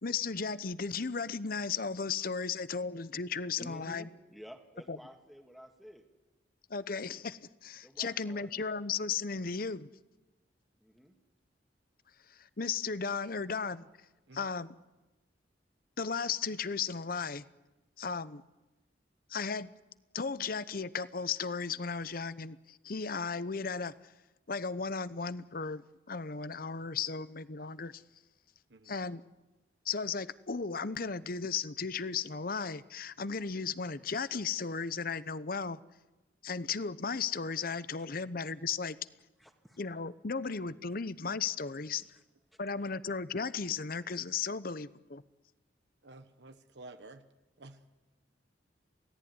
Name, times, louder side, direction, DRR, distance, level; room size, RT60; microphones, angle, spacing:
voice 1, 0.0-4.1 4.9-5.0 6.7-9.9 12.3-13.9 14.3-14.7 16.0-17.4 18.0-18.4 19.3-19.7 20.1-23.9 24.5-28.0 28.9-29.2 29.9-35.8 36.4-39.0 39.8-42.0 42.6-45.2, left 5 dB, 50° left, 0.8 m, -35 dB
voice 2, 3.6-6.1 7.8-8.6 10.8-11.1 39.4-39.8 41.9-42.0, equal, ahead, 2.1 m, -51 dB
voice 3, 46.0-47.2 47.6-47.9, right 2 dB, 70° right, 1.2 m, -51 dB
28.5 x 17.5 x 9.7 m
head